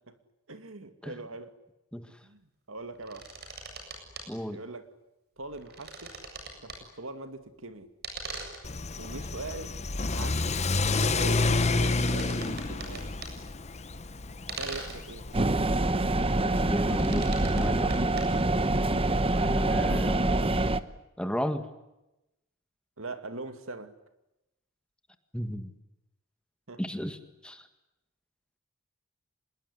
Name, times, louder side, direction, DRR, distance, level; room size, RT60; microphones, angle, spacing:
voice 1, 0.5-1.5 2.2-3.3 4.5-4.9 5.4-6.2 6.6-7.9 9.0-9.7 10.1-10.5 10.9-13.1 14.5-15.3 23.0-23.9 26.7-26.8, right 2 dB, 65° right, 9 dB, 2.5 m, -41 dB
sound 1, 2.8-4.2 5.4-6.9 8.0-8.7 10.0-10.4 11.1-13.5 14.5-15.0 16.6-18.2, right 3 dB, 50° right, 7.9 m, -42 dB
voice 2, 4.3-4.6 16.4-17.9 19.4-20.7 21.2-21.7 25.3-25.7 26.8-27.2 27.4-27.7, equal, 5° left, 9 dB, 1.9 m, -34 dB
Car / Accelerating revving vroom, 8.6-15.4, left 3 dB, 30° left, 1.0 m, -29 dB
sound 2, 15.3-20.8, right 2 dB, 25° right, 1.1 m, -25 dB
26.5 x 21.5 x 9.7 m, 0.93 s
head